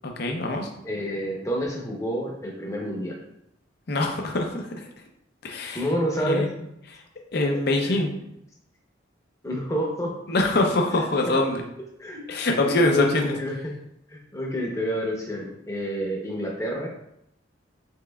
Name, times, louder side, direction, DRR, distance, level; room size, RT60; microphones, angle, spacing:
voice 1, 0.0-0.7 3.9-4.9 5.4-5.9 6.3-6.5 6.9-7.0 7.3-8.1 10.3-11.6 12.3-13.3, left 2 dB, 55° left, 2 dB, 0.6 m, -24 dB
voice 2, 0.8-3.2 5.7-6.4 7.8-8.0 9.4-10.1 12.0-13.7 14.1-16.9, equal, 15° left, -1 dB, 0.8 m, -29 dB
5.4 x 3.4 x 2.3 m, 0.79 s
head